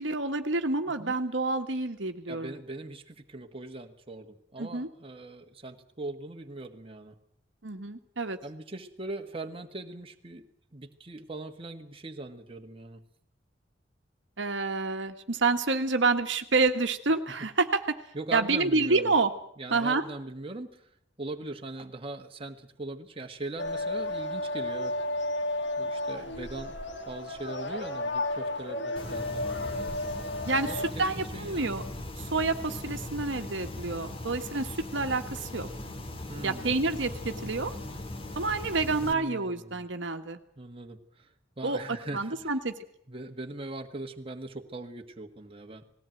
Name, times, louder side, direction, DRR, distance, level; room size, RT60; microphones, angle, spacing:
voice 1, 0.0-2.5 4.6-4.9 7.6-8.4 14.4-18.0 18.3-19.3 19.7-20.0 30.4-31.8 32.2-35.7 36.4-37.7 38.3-40.4 41.6-42.7, right 3 dB, 70° right, 6 dB, 1.5 m, -28 dB
voice 2, 2.3-7.2 8.4-10.4 10.7-13.0 18.1-19.1 19.6-20.9 21.2-25.0 25.8-26.8 27.1-29.9 30.5-31.8 36.3-36.8 37.1-37.4 39.0-39.8 40.6-42.5 43.1-45.8, right 2 dB, 30° right, 4 dB, 1.5 m, -40 dB
sound 1, 23.6-30.9, left 1 dB, 70° left, 2.4 m, -33 dB
sound 2, 29.0-39.1, left 1 dB, 30° left, 1.9 m, -39 dB
19.5 x 16.5 x 9.1 m, 0.70 s
head